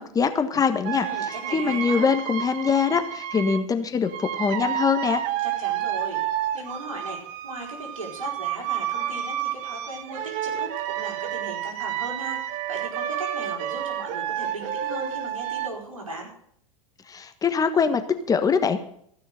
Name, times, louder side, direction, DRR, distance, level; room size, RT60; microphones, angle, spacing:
voice 1, 0.0-5.3 17.1-18.8, left 6 dB, 20° left, 9 dB, 1.3 m, -23 dB
sound 1, 0.8-3.7 4.1-15.7, right 11 dB, 50° right, 1.1 m, -30 dB
voice 2, 1.0-2.1 5.4-6.2 6.5-16.3, right 2 dB, 90° right, 0 dB, 4.4 m, -38 dB
14.5 x 6.5 x 7.9 m, 0.66 s
hypercardioid pair, 90°, 17 cm